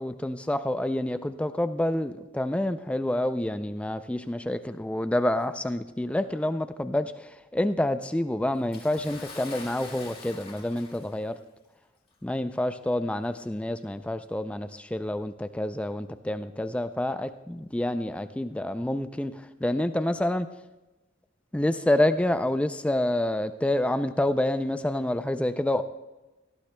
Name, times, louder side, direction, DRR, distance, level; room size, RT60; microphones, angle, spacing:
voice 1, 0.0-11.4 12.2-20.5 21.5-25.8, left 1 dB, 5° left, 10 dB, 0.3 m, -28 dB
Bathtub (filling or washing) / Splash splatter, 8.7-11.3 12.2-12.3 13.3-13.4, left 3 dB, 30° left, 2.7 m, -44 dB
18.0 x 14.5 x 2.2 m, 1.1 s
head